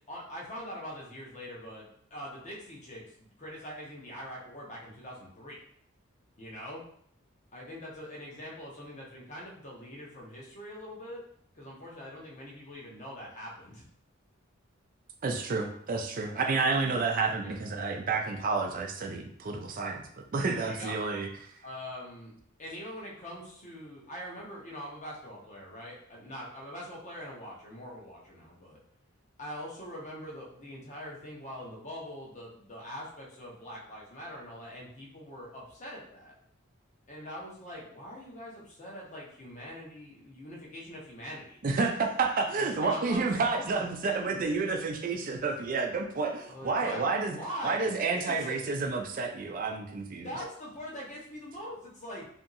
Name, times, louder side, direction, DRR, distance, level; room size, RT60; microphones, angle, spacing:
voice 1, 0.1-5.6 6.4-6.8 7.5-11.2 11.5-13.8 16.3-17.1 17.4-17.6 20.5-20.9 21.6-22.3 22.6-28.8 29.4-36.3 37.1-41.6 42.5-44.5 46.5-48.6 50.2-52.3, equal, 35° left, -4 dB, 0.8 m, -43 dB
voice 2, 15.2-20.1 20.3-21.3 41.6-47.4 47.6-50.3, right 4 dB, 40° right, 3 dB, 0.4 m, -30 dB
2.8 x 2.7 x 2.5 m, 0.65 s
head